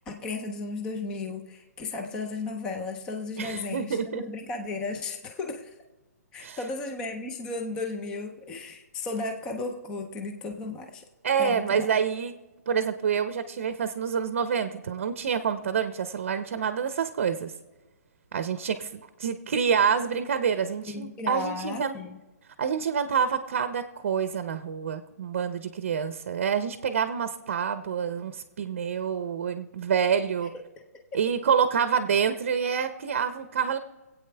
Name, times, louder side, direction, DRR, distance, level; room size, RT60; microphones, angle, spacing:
voice 1, 0.0-5.7 6.3-11.1 11.4-11.9 20.9-22.2 30.8-30.9, left 3 dB, 10° left, 4 dB, 0.5 m, -34 dB
voice 2, 3.4-4.2 6.4-6.6 11.2-12.3 12.7-17.5 18.3-21.9 22.6-30.5 31.1-33.8, right 7 dB, 45° right, 10 dB, 0.7 m, -27 dB
25.0 x 8.5 x 3.4 m, 1.1 s
hypercardioid pair, 175°, 9 cm